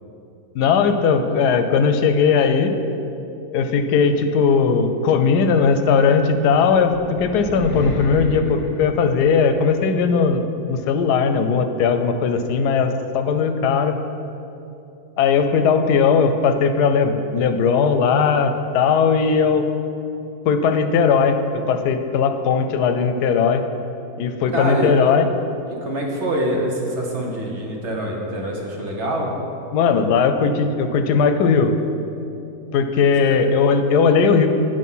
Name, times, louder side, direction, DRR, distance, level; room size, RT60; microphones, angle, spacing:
voice 1, 0.5-2.7 3.5-10.4 10.7-13.9 15.2-19.6 20.5-21.4 21.7-23.6 24.2-25.3 29.7-31.8 32.7-34.5, left 5 dB, 85° left, 8 dB, 1.2 m, -18 dB
sound 1, 6.8-9.7, equal, 20° left, 0.7 m, -32 dB
voice 2, 24.5-24.9 25.7-29.3 33.3-33.4, right 1 dB, 50° right, 0 dB, 1.2 m, -25 dB
9.3 x 5.0 x 5.5 m, 2.8 s
omnidirectional pair, 1.7 m